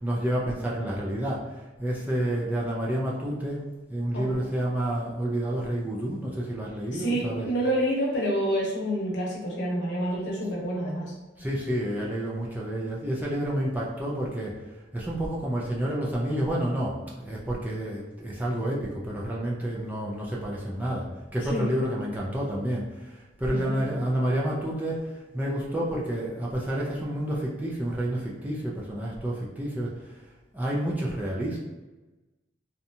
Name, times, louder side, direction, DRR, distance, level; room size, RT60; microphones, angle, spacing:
voice 1, 0.0-3.6 3.9-7.5 11.4-14.5 14.9-21.1 21.3-30.1 30.5-31.6, right 1 dB, 10° right, -4 dB, 0.3 m, -29 dB
voice 2, 6.9-11.0 21.5-21.7 23.5-23.8, equal, 65° left, -4 dB, 0.8 m, -28 dB
2.7 x 2.2 x 2.6 m, 1.1 s
head